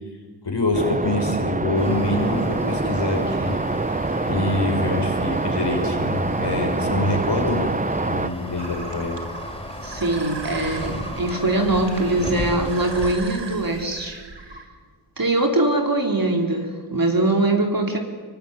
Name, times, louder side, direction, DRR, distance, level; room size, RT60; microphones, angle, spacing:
voice 1, 0.4-3.6 4.2-7.7 8.0-9.2, left 2 dB, 80° left, 2 dB, 6.2 m, -25 dB
sound 1, 0.7-8.3, right 3 dB, 20° right, 0.7 m, -25 dB
sound 2, 1.8-13.1, equal, 10° left, 5.8 m, -35 dB
sound 3, 8.6-14.6, right 3 dB, 85° right, 3.1 m, -38 dB
voice 2, 9.8-14.2 15.2-18.0, right 2 dB, 55° right, 3 dB, 4.6 m, -22 dB
24.0 x 23.0 x 9.6 m, 1.5 s
wide cardioid pair, 60°, 41 cm